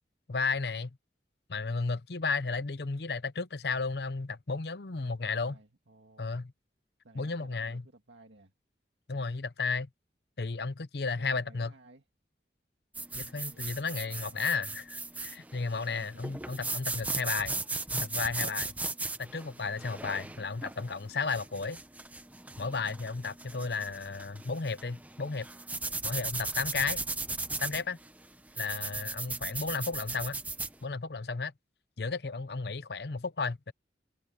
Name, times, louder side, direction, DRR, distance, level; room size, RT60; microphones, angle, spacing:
voice 1, 0.3-1.0 1.5-5.6 6.2-6.5 7.1-7.8 9.1-9.9 10.4-11.7 13.1-17.5 17.9-18.7 19.2-21.8 22.6-25.5 26.0-27.0 27.6-28.0 28.6-30.4 30.8-31.5 32.0-33.7, left 4 dB, 60° left, 0.8 m, -33 dB
voice 2, 5.1-6.4 7.0-8.5 11.2-12.0 13.5-13.8 14.3-14.5 15.7-16.6 23.5-24.0 30.1-30.4, right 2 dB, 90° right, 2.0 m, -58 dB
sound 1, 12.9-30.7, right 3 dB, 10° right, 0.9 m, -37 dB
head